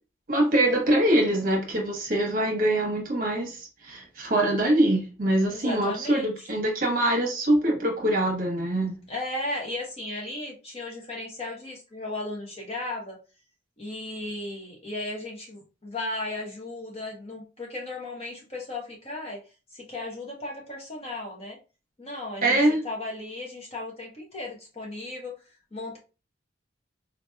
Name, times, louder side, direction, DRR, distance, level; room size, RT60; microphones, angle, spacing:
voice 1, 0.3-9.0 22.4-22.8, right 1 dB, 45° right, 1 dB, 1.0 m, -24 dB
voice 2, 5.5-6.5 9.1-13.2 13.8-19.4 19.7-21.6 22.0-26.0, left 2 dB, 30° left, -1 dB, 0.9 m, -35 dB
3.9 x 2.9 x 2.2 m, 0.32 s
head